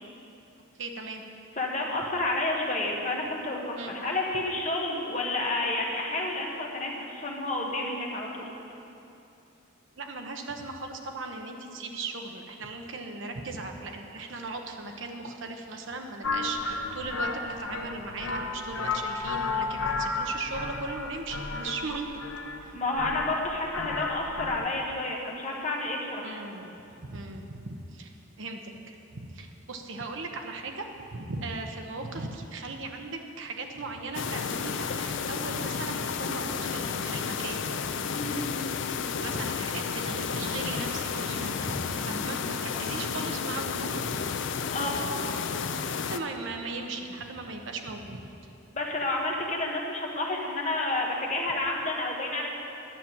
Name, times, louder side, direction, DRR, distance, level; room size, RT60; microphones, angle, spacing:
voice 1, 0.8-1.2 3.8-4.0 10.0-22.1 22.6-22.8 26.2-26.7 27.1-28.1 28.4-28.6 28.9-37.7 39.2-44.0 45.9-48.2, right 3 dB, 60° right, 3 dB, 0.9 m, -38 dB
voice 2, 1.6-8.5 22.7-26.4 38.1-38.5 44.7-44.9 48.7-52.5, left 2 dB, 35° left, -1 dB, 1.4 m, -30 dB
sound 1, 16.2-24.6, left 3 dB, 75° left, 0.9 m, -33 dB
sound 2, 34.1-46.2, left 6 dB, 60° left, 0.4 m, -32 dB
10.5 x 5.9 x 8.6 m, 2.8 s
head